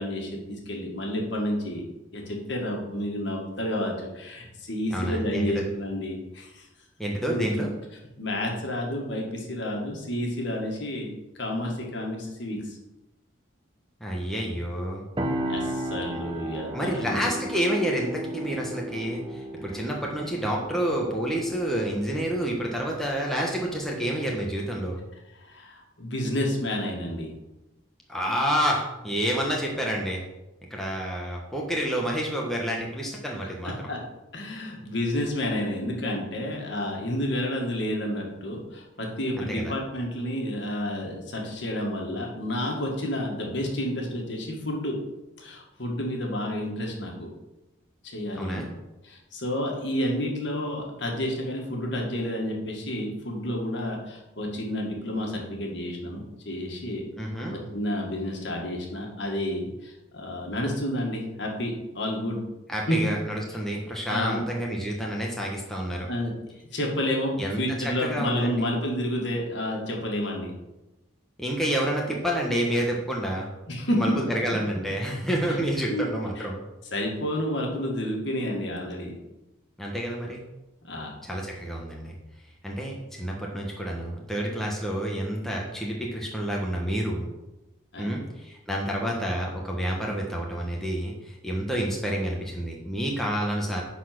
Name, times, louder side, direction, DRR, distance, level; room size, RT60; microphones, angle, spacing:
voice 1, 0.0-1.8 2.1-6.7 7.3-7.7 8.2-11.1 11.4-12.8 15.5-17.3 25.4-27.3 33.6-34.0 34.3-45.0 45.4-47.3 48.0-48.6 49.0-57.0 57.5-62.4 62.7-63.0 64.1-64.4 66.1-66.3 66.7-70.5 73.7-74.2 74.5-74.6 75.4-75.6 75.9-76.5 76.9-79.2 80.8-81.2 87.9-88.2, left 1 dB, 60° left, 0 dB, 1.9 m, -30 dB
voice 2, 4.9-5.6 7.0-7.7 14.0-15.0 16.7-25.0 28.1-30.2 30.7-33.9 39.4-39.7 48.3-48.7 57.2-57.6 62.7-66.1 67.4-67.6 68.0-68.7 71.4-73.5 74.0-76.6 79.8-80.4 81.2-82.1 82.6-87.3 88.0-93.8, equal, ahead, -2 dB, 1.1 m, -29 dB
sound 1, 15.2-24.9, right 1 dB, 25° right, 0.8 m, -36 dB
10.0 x 4.3 x 6.0 m, 0.98 s
head